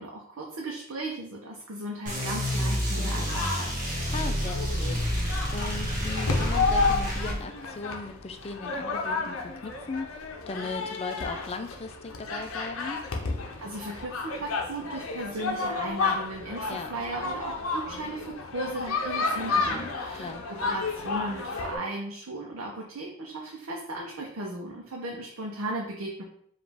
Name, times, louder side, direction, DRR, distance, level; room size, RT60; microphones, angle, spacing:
voice 1, 0.0-3.7 13.6-26.2, right 2 dB, 85° right, -1 dB, 0.7 m, -36 dB
sound 1, 2.1-7.4, equal, 40° right, 1.1 m, -29 dB
voice 2, 3.0-3.3 4.1-5.3 5.5-9.4 9.6-13.0 16.7-16.9 19.5-20.8, left 3 dB, 30° left, 8 dB, 0.4 m, -38 dB
sound 2, 3.3-21.8, left 4 dB, 80° left, 0.6 m, -32 dB
5.0 x 2.5 x 3.4 m, 0.67 s
head